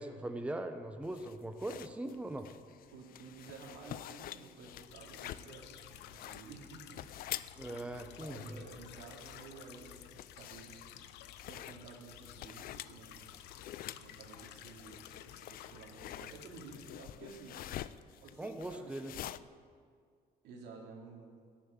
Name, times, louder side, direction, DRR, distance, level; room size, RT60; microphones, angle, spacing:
voice 1, 0.0-2.5 7.6-8.6 18.4-19.1, right 1 dB, 5° right, 7 dB, 0.8 m, -40 dB
sound 1, 1.0-19.4, left 12 dB, 60° left, 0.5 m, -48 dB
voice 2, 2.9-7.1 7.8-10.8 11.4-13.3 13.9-17.6 18.2-19.3 20.4-21.3, right 4 dB, 80° right, 0 dB, 2.9 m, -52 dB
sound 2, 4.6-17.0, left 11 dB, 80° left, 0.8 m, -53 dB
15.0 x 7.4 x 9.0 m, 2.1 s
cardioid pair, 110°, 17 cm